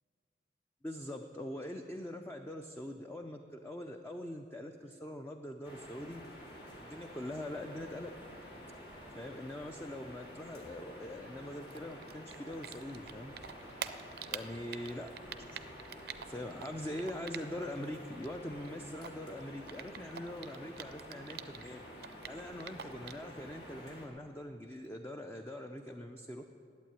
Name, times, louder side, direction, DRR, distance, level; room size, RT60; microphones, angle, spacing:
voice 1, 0.8-6.2 6.8-8.1 9.1-13.3 14.3-15.6 16.2-21.8 22.3-26.4, left 1 dB, 15° left, 4 dB, 0.5 m, -43 dB
sound 1, 5.6-24.1, equal, 65° left, 2.2 m, -50 dB
Typing, 11.7-13.1 13.4-17.8 18.1-21.7 22.0-23.3, right 9 dB, 60° right, 0.5 m, -45 dB
11.5 x 8.6 x 9.0 m, 2.6 s
head